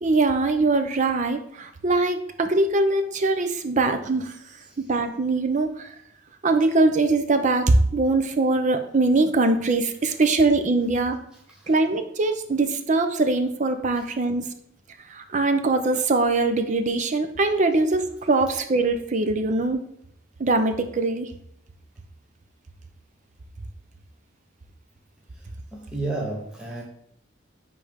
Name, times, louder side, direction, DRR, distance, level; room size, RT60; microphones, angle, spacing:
voice 1, 0.0-4.3 4.8-5.9 6.4-11.2 11.7-14.5 15.1-19.8 20.4-21.3, right 3 dB, 40° right, 7 dB, 0.6 m, -22 dB
voice 2, 25.3-26.8, right 2 dB, 5° right, -4 dB, 0.9 m, -33 dB
10.0 x 3.4 x 3.6 m, 0.74 s
head